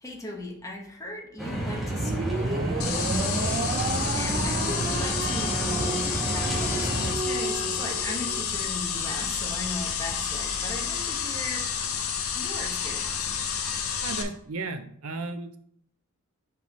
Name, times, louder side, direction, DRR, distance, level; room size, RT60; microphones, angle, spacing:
voice 1, 0.0-6.0 6.3-11.7 12.3-13.3, left 2 dB, 15° left, 0 dB, 1.0 m, -38 dB
sound 1, 1.4-7.1, right 1 dB, ahead, 1.4 m, -30 dB
sound 2, 1.9-8.4, right 4 dB, 40° right, 0.4 m, -33 dB
sound 3, 2.8-14.2, left 7 dB, 80° left, 0.7 m, -30 dB
voice 2, 14.0-15.6, right 3 dB, 85° right, 9 dB, 0.6 m, -34 dB
5.5 x 5.5 x 3.1 m, 0.65 s
head